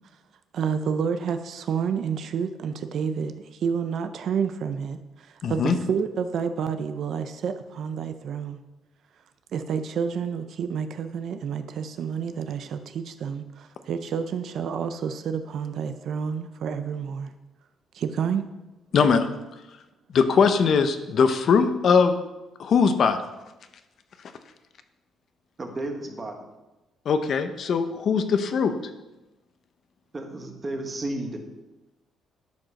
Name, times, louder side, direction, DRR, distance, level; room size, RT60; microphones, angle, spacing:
voice 1, 0.5-8.6 9.5-17.3 17.9-18.4, right 7 dB, 55° right, 9 dB, 0.6 m, -29 dB
voice 2, 5.4-5.7 18.9-19.2 20.1-22.1 22.6-23.2 27.1-28.7, left 5 dB, 45° left, 9 dB, 0.7 m, -20 dB
voice 3, 25.6-26.3 30.1-31.4, right 2 dB, 20° right, 3 dB, 1.3 m, -32 dB
11.5 x 5.2 x 6.3 m, 1.0 s
cardioid pair, 165°, 0 cm